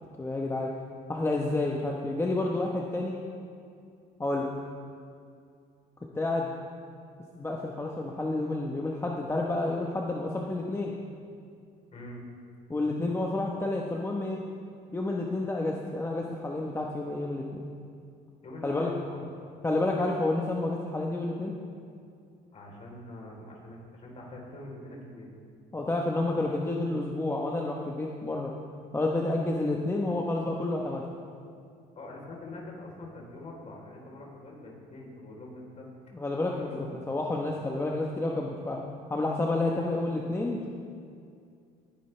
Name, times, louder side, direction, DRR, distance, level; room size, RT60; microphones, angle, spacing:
voice 1, 0.2-0.7 1.1-3.2 4.2-4.5 6.1-6.5 7.3-10.9 12.7-14.4 14.9-17.6 18.6-18.9 19.6-21.5 25.7-28.5 28.9-31.0 36.1-38.8 39.1-40.7, left 2 dB, 15° left, -1 dB, 1.0 m, -30 dB
voice 2, 11.9-12.2 18.4-19.5 22.5-25.3 32.0-35.9 36.4-37.1, left 1 dB, 40° left, -2 dB, 3.6 m, -44 dB
20.5 x 10.0 x 3.3 m, 2.4 s
cardioid pair, 110°, 17 cm